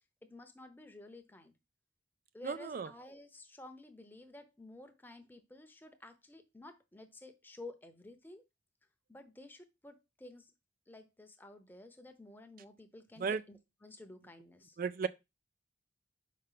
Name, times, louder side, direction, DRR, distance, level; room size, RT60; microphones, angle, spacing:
voice 1, 0.2-1.5 2.3-8.5 9.1-10.5 10.9-14.8, left 2 dB, 10° left, 0.8 m, -53 dB
voice 2, 2.4-2.9 13.2-13.4 14.8-15.1, right 5 dB, 45° right, 0.3 m, -34 dB
5.3 x 5.1 x 5.7 m
head